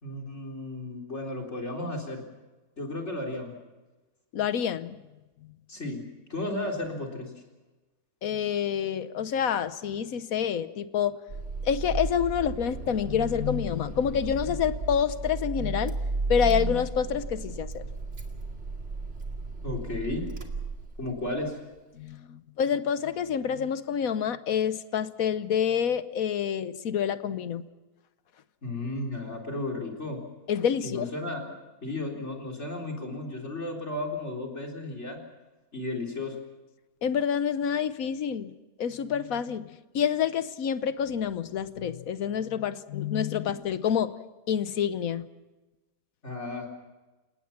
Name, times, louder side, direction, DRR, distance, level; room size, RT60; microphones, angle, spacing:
voice 1, 0.0-2.2 2.8-3.5 5.7-6.0 6.3-7.3 19.6-20.2 21.0-21.6 28.6-30.2 30.8-31.4 31.8-35.2 35.7-36.4 46.2-46.7, left 2 dB, 50° left, 0 dB, 4.3 m, -34 dB
voice 2, 4.3-5.0 5.4-5.5 8.2-11.2 11.6-15.9 16.3-17.8 21.9-27.6 30.5-31.1 37.0-38.5 38.8-44.1 44.5-45.3, left 8 dB, 75° left, 13 dB, 1.3 m, -28 dB
Car / Engine starting, 11.3-21.3, right 3 dB, 50° right, 2.6 m, -34 dB
30.0 x 18.0 x 5.9 m, 1.2 s
omnidirectional pair, 1.5 m